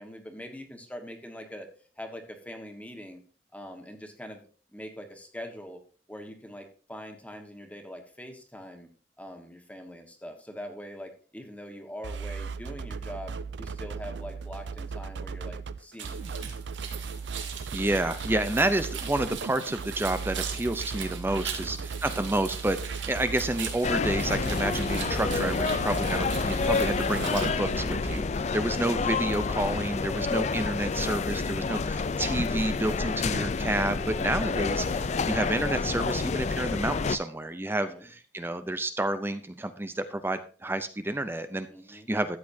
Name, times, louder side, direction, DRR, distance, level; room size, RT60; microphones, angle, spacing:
voice 1, 0.0-1.7 2.0-3.2 3.5-4.4 4.7-5.8 6.1-8.9 9.2-16.4 21.6-21.9 37.9-38.1 41.7-42.1, equal, 10° left, 4 dB, 1.4 m, -43 dB
sound 1, 12.0-28.2, right 5 dB, 70° right, 0.5 m, -37 dB
sound 2, 16.0-27.5, right 7 dB, 90° right, 2.2 m, -40 dB
voice 2, 17.7-42.4, right 1 dB, 10° right, 10 dB, 0.5 m, -30 dB
sound 3, 23.8-37.2, left 4 dB, 40° left, 0.4 m, -29 dB
13.5 x 8.4 x 2.7 m, 0.40 s
head